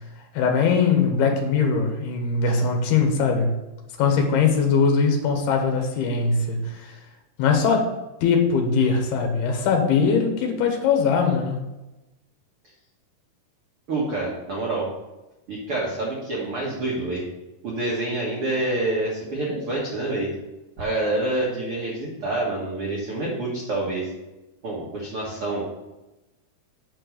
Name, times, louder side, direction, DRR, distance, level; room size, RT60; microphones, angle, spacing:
voice 1, 0.3-3.5 4.0-6.9 7.4-7.9 8.2-11.6, left 5 dB, 70° left, 2 dB, 3.1 m, -21 dB
voice 2, 13.9-14.9 15.5-17.2 17.6-20.3 20.8-24.1 24.6-25.6, right 2 dB, 60° right, -4 dB, 1.4 m, -27 dB
8.4 x 4.4 x 6.5 m, 1.0 s
omnidirectional pair, 4.9 m